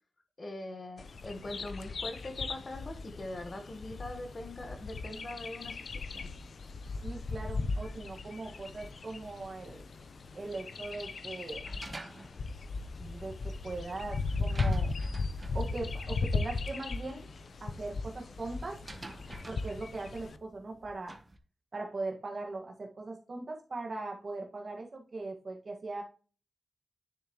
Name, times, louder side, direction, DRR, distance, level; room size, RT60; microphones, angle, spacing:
voice 1, 0.4-6.3, left 1 dB, 35° left, 6 dB, 1.3 m, -42 dB
Bird vocalization bird call bird song, 1.0-20.4, left 3 dB, 65° left, 0.7 m, -37 dB
voice 2, 7.0-9.8 10.3-11.6 13.0-14.9 15.5-17.3 17.6-18.8 19.5-21.2 21.7-26.0, right 3 dB, 45° right, 1 dB, 1.7 m, -40 dB
sound 1, 11.7-21.4, right 2 dB, 25° right, 1.0 m, -50 dB
10.0 x 7.0 x 3.1 m, 0.37 s
wide cardioid pair, 135°, 0 cm